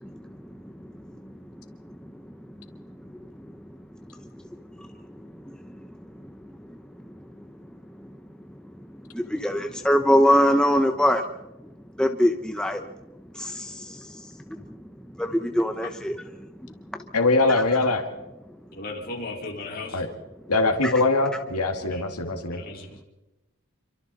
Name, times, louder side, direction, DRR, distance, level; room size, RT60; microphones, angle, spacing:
voice 1, 0.0-7.5 8.0-8.2 8.8-11.2 12.0-12.9 13.3-14.8 15.1-17.0 17.5-17.6 20.8-20.9, equal, 5° left, 5 dB, 0.8 m, -27 dB
voice 2, 17.1-18.1 19.9-20.1 20.5-22.6, left 3 dB, 90° left, 5 dB, 2.0 m, -22 dB
voice 3, 18.7-20.0 21.9-22.0 22.5-23.0, left 2 dB, 40° left, -1 dB, 4.4 m, -36 dB
27.0 x 24.5 x 4.1 m, 1.0 s
head